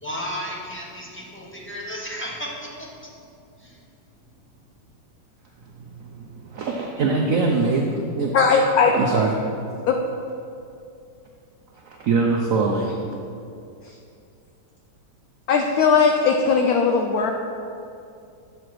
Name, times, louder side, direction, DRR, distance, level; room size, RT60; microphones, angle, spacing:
voice 1, 0.0-2.7, equal, 10° left, -4 dB, 0.7 m, -33 dB
voice 2, 5.8-8.3 8.8-9.3 11.8-13.0, right 4 dB, 80° right, 1 dB, 0.7 m, -23 dB
voice 3, 8.3-8.9 9.9-10.0 13.8-13.9 15.5-17.3, left 5 dB, 80° left, 3 dB, 0.8 m, -18 dB
8.1 x 4.9 x 6.0 m, 2.5 s
omnidirectional pair, 2.1 m